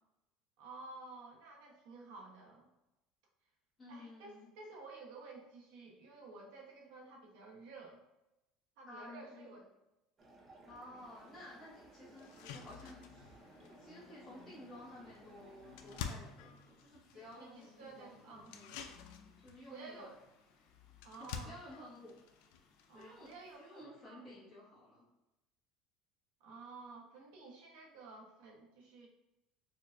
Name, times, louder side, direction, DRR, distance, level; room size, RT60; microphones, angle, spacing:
voice 1, 0.6-2.7 3.9-8.0 8.8-9.6 17.1-18.6 19.7-20.1 21.0-21.6 22.9-24.3 26.4-29.1, right 3 dB, 80° right, 0 dB, 0.9 m, -52 dB
voice 2, 3.8-4.5 8.9-9.5 10.7-18.8 19.4-20.1 21.2-22.2 22.9-25.0, left 1 dB, 15° left, -10 dB, 0.9 m, -54 dB
sound 1, 10.2-16.2, right 2 dB, 25° right, 0.5 m, -59 dB
sound 2, 11.0-23.6, left 3 dB, 45° left, 0.7 m, -64 dB
sound 3, 11.2-11.3 11.7-11.8 12.2-23.8, left 7 dB, 85° left, 0.3 m, -51 dB
4.4 x 2.2 x 2.5 m, 0.93 s
cardioid pair, 160°, 0 cm